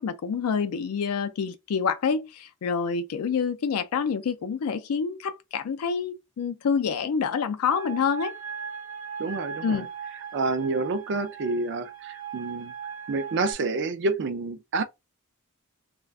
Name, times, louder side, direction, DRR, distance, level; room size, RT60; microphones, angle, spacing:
voice 1, 0.0-8.3 9.6-9.9, left 6 dB, 75° left, 0.4 m, -27 dB
sound 1, 7.7-13.5, right 7 dB, 85° right, 0.8 m, -38 dB
voice 2, 9.2-9.9 10.3-12.7 13.1-14.8, right 3 dB, 55° right, 0.4 m, -28 dB
2.3 x 2.2 x 3.3 m
head